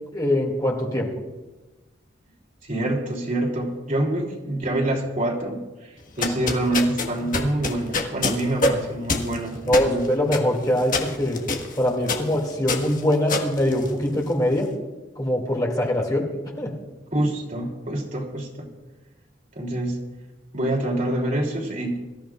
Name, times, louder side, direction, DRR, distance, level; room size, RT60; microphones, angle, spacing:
voice 1, 0.1-1.1 9.7-11.4 11.8-14.7 15.2-16.3 16.6-16.7, left 1 dB, 20° left, -1 dB, 2.5 m, -23 dB
voice 2, 2.6-10.1 17.1-18.7 19.5-20.0 20.5-22.0, right 1 dB, 45° right, -1 dB, 3.2 m, -26 dB
sound 1, 6.0-14.4, left 3 dB, 45° left, 1.5 m, -27 dB
24.0 x 14.0 x 2.5 m, 1.2 s
head